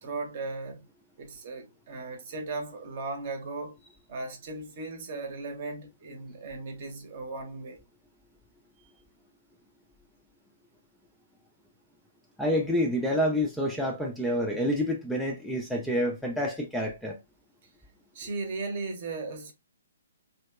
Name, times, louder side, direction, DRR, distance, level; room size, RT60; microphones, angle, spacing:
voice 1, 0.0-0.8 1.2-3.8 4.1-7.8 18.1-19.5, right 3 dB, 40° right, 0.8 m, -37 dB
voice 2, 12.4-17.2, equal, ahead, 0.4 m, -28 dB
2.8 x 2.7 x 2.3 m
figure-of-eight pair, 130°, 0 cm